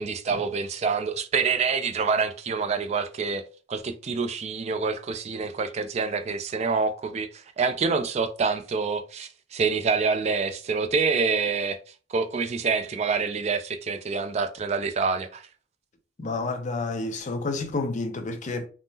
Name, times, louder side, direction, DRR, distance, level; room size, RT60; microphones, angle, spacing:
voice 1, 0.0-3.4 3.7-11.8 12.1-15.4, right 5 dB, 35° right, 0.3 m, -26 dB
voice 2, 16.2-18.7, left 3 dB, 35° left, 0.5 m, -30 dB
3.5 x 2.0 x 2.7 m
head